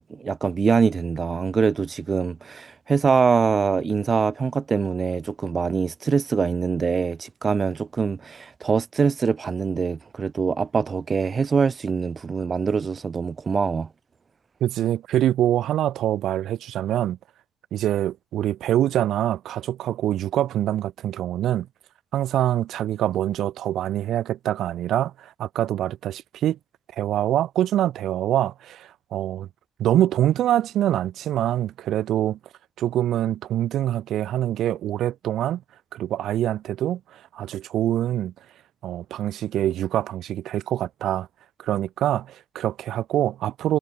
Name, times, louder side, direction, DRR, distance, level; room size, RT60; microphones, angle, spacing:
voice 1, 0.0-13.9, right 5 dB, 40° right, 1.0 m, -23 dB
voice 2, 14.6-17.2 17.7-21.7 22.1-26.6 27.0-29.5 29.8-32.4 32.8-35.6 35.9-38.3 38.8-41.3 41.6-43.8, right 12 dB, 75° right, 1.7 m, -25 dB
cardioid pair, 90°, 0 cm